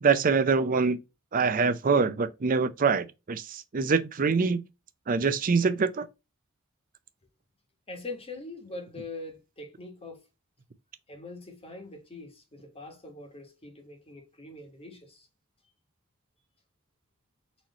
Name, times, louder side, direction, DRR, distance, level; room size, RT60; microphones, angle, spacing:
voice 1, 0.0-1.0 1.3-4.6 5.1-6.1, right 5 dB, 40° right, 0.5 m, -24 dB
voice 2, 7.9-10.2 11.1-15.3, left 2 dB, 30° left, 1.4 m, -43 dB
4.2 x 3.1 x 4.0 m
head